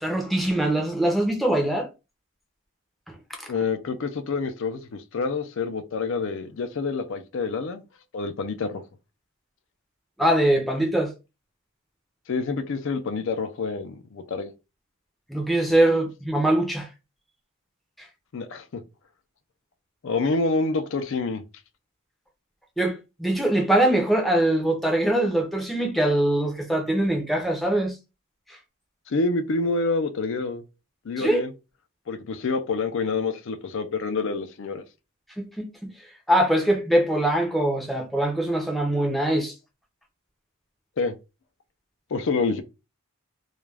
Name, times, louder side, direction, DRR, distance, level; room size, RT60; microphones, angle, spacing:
voice 1, 0.0-1.9 10.2-11.1 15.3-16.9 22.8-27.9 31.2-31.4 35.4-35.9 36.3-39.5, right 1 dB, ahead, 0.5 m, -22 dB
voice 2, 3.5-7.8 8.1-8.8 12.3-14.5 18.3-18.8 20.0-21.4 29.1-30.6 31.0-31.5 32.1-34.8 41.0-41.1 42.1-42.6, left 3 dB, 60° left, 0.4 m, -27 dB
2.4 x 2.2 x 3.2 m
head